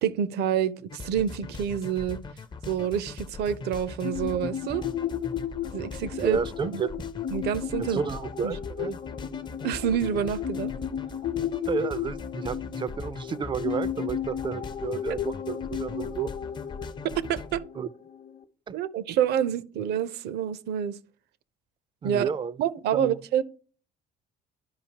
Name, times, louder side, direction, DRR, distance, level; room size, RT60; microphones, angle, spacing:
voice 1, 0.0-2.2 2.7-4.8 5.7-6.4 6.7-6.8 7.3-8.0 8.4-8.6 9.6-10.7 17.2-17.6 18.7-21.0 22.0-22.3 22.6-23.4, right 9 dB, 75° right, 0.7 m, -27 dB
sound 1, 0.9-17.6, left 3 dB, 25° left, 0.5 m, -40 dB
sound 2, 4.0-18.4, left 9 dB, 50° left, 0.9 m, -34 dB
voice 2, 6.2-6.9 7.8-9.0 11.7-16.3 17.8-17.9 18.7-18.8 22.0-22.5 22.9-23.1, right 6 dB, 30° right, 0.4 m, -31 dB
11.5 x 5.1 x 2.9 m
cardioid pair, 110°, 17 cm